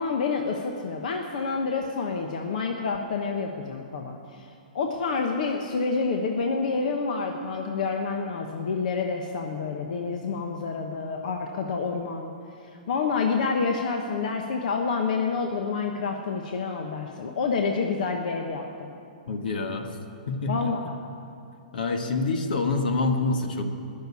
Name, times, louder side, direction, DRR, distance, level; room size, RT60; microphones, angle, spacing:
voice 1, 0.0-4.5 4.7-12.3 12.9-18.9 20.5-21.0, left 4 dB, 65° left, 3 dB, 1.1 m, -28 dB
voice 2, 19.3-19.9 20.3-20.7 21.7-23.6, left 3 dB, 80° left, 5 dB, 1.6 m, -26 dB
19.5 x 6.7 x 9.8 m, 2.6 s
hypercardioid pair, 150°, 5 cm